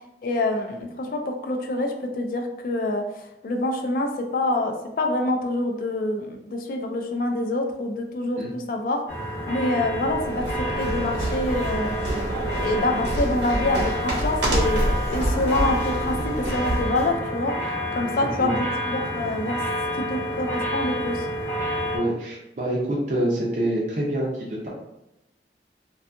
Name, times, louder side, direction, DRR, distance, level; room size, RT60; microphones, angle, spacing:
voice 1, 0.2-9.0 9.5-10.4 10.8-12.0 12.4-17.5 17.9-18.6 18.9-19.6 20.1-21.3, left 2 dB, 50° left, 4 dB, 0.3 m, -26 dB
sound 1, 9.1-22.0, equal, 15° left, 0.6 m, -29 dB
sound 2, 10.0-17.1, right 1 dB, 80° right, 0.9 m, -27 dB
voice 2, 21.9-24.7, right 1 dB, 45° right, -5 dB, 0.4 m, -26 dB
2.6 x 2.3 x 2.5 m, 0.89 s
head